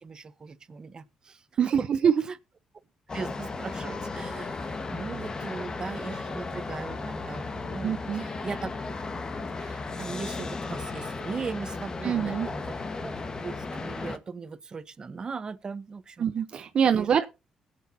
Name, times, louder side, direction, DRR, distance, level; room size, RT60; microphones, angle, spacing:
voice 1, 0.0-1.4 1.8-1.9 2.2-2.4 3.1-8.7 9.2-13.1 13.4-16.3 16.9-17.3, right 5 dB, 40° right, 1.2 m, -39 dB
voice 2, 1.6-2.1 7.8-8.2 12.0-12.5 16.2-17.3, right 8 dB, 60° right, 0.8 m, -24 dB
sound 1, 3.1-14.2, left 3 dB, 35° left, 1.5 m, -35 dB
20.5 x 8.2 x 2.8 m
supercardioid pair, 60°, 2 cm